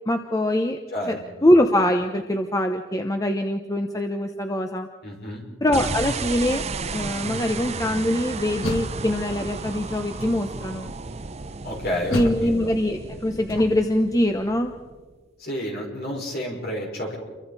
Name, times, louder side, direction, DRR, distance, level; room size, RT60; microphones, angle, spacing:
voice 1, 0.1-0.8 1.1-4.9 5.6-10.9 12.1-14.7, left 1 dB, 15° left, 5 dB, 0.9 m, -23 dB
voice 2, 5.0-5.4 11.6-12.7 15.4-17.2, equal, 50° left, 0 dB, 5.2 m, -30 dB
sound 1, 5.7-15.1, right 4 dB, 30° right, 0.6 m, -33 dB
Door, 8.4-9.6 10.2-10.8 12.1-14.0, left 1 dB, 85° left, 1.8 m, -34 dB
29.0 x 24.0 x 4.2 m, 1.4 s
head